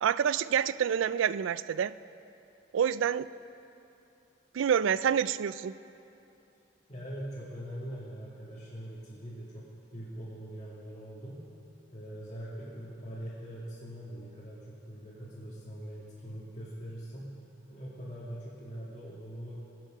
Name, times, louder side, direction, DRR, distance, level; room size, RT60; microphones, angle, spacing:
voice 1, 0.0-1.9 2.7-3.3 4.5-5.8, right 8 dB, 80° right, 16 dB, 0.3 m, -27 dB
voice 2, 6.9-9.7 9.9-11.4 11.9-17.3 17.7-19.6, equal, 30° left, -11 dB, 2.5 m, -42 dB
21.5 x 9.0 x 5.2 m, 2.8 s
head